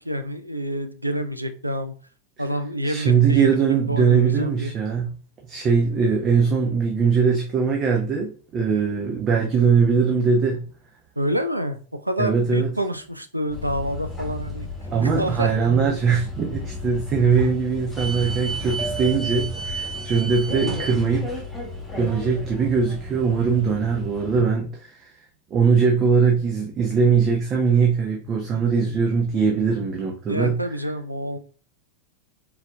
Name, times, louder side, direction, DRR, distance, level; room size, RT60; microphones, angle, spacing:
voice 1, 0.0-1.9 2.4-4.7 11.2-14.7 15.0-15.5 20.5-20.8 30.3-31.4, equal, 85° right, 0.4 m, -28 dB
voice 2, 2.8-5.1 5.4-10.6 12.2-12.7 14.9-21.4 22.0-25.1 25.5-30.6, right 5 dB, 30° right, 0.7 m, -21 dB
sound 1, 13.5-24.4, equal, 5° left, 1.3 m, -33 dB
4.1 x 3.9 x 2.2 m
figure-of-eight pair, 90°, 0 cm